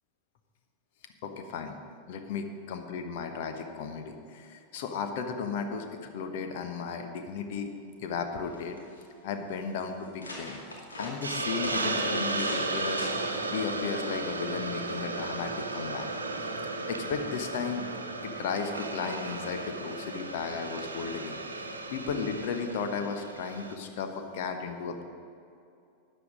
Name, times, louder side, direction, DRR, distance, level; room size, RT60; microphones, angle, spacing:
voice 1, 1.2-1.8 2.1-7.7 8.0-8.8 9.2-10.6 11.0-13.1 13.5-16.1 16.9-17.9 18.2-21.4 21.9-25.0, left 5 dB, 50° left, 6 dB, 1.2 m, -35 dB
sound 1, 8.1-8.2 8.4-9.0 9.6-9.7 10.0-12.7 13.0-13.4 14.2-14.4, left 1 dB, 75° left, 2.3 m, -41 dB
Hiss, 11.2-23.8, right 3 dB, 75° right, 1.0 m, -34 dB
13.0 x 9.3 x 5.1 m, 2.6 s
figure-of-eight pair, 90°, 0 cm